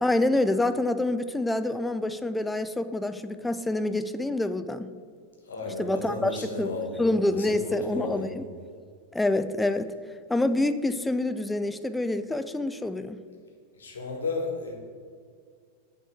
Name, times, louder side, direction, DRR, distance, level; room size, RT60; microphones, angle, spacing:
voice 1, 0.0-4.9 5.8-6.7 7.0-8.5 9.1-9.9 10.3-13.2, left 2 dB, 5° left, 10 dB, 0.3 m, -27 dB
voice 2, 5.4-8.4 13.8-14.7, left 3 dB, 70° left, 0 dB, 1.3 m, -34 dB
8.8 x 3.3 x 4.4 m, 2.1 s
figure-of-eight pair, 90°, 0 cm